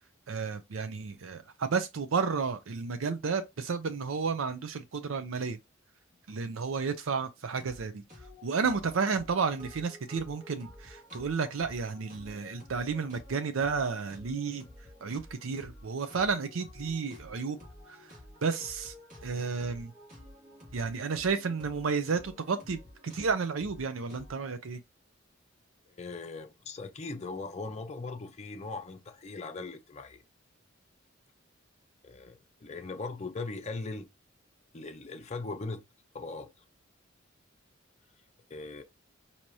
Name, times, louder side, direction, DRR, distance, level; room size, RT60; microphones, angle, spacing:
voice 1, 0.3-5.6 6.3-8.0 8.4-14.6 15.0-17.6 17.9-18.1 18.4-18.9 19.2-19.9 20.7-24.8, right 5 dB, 90° right, 0.5 m, -32 dB
sound 1, 7.6-7.8 8.1-24.6, left 1 dB, 40° right, 2.0 m, -51 dB
voice 2, 25.9-30.2 32.0-34.1 34.7-35.8 36.1-36.5 38.5-38.8, left 3 dB, 35° left, 0.5 m, -39 dB
4.6 x 2.8 x 2.7 m
head